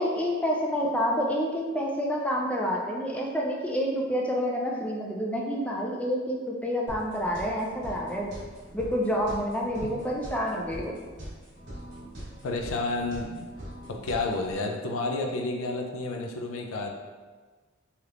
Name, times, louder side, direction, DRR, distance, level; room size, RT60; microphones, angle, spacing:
voice 1, 0.0-8.3 8.7-10.9, equal, 5° left, -2 dB, 0.3 m, -28 dB
sound 1, 6.9-14.6, equal, 60° right, 1.1 m, -43 dB
voice 2, 12.4-13.5 13.9-17.0, left 2 dB, 75° left, 3 dB, 0.4 m, -30 dB
3.3 x 2.8 x 2.4 m, 1.4 s
head